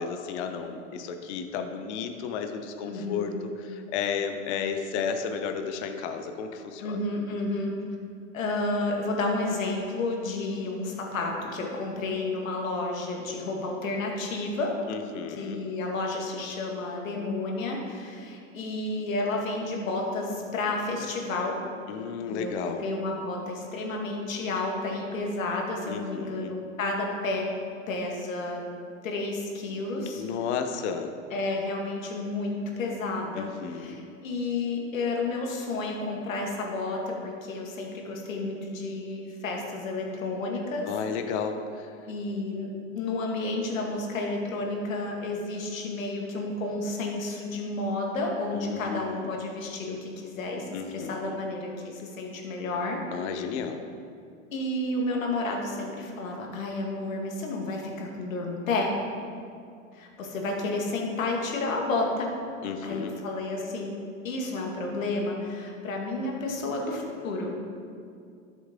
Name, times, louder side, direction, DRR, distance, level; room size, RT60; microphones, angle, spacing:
voice 1, 0.0-7.0 14.9-15.6 21.9-22.8 25.9-26.5 30.1-31.1 33.4-34.0 40.9-41.9 48.5-49.3 50.7-51.4 53.1-53.8 62.6-63.1, left 6 dB, 60° left, 6 dB, 1.0 m, -33 dB
voice 2, 2.8-3.4 6.8-7.7 8.3-14.7 15.3-21.6 22.3-27.4 27.9-28.7 29.0-30.2 31.3-40.9 42.1-42.7 42.9-53.0 54.5-58.9 59.9-62.3 62.8-63.9 64.2-67.6, left 2 dB, 80° left, 0 dB, 2.1 m, -31 dB
12.5 x 7.1 x 3.7 m, 2.3 s
hypercardioid pair, 110°, 39 cm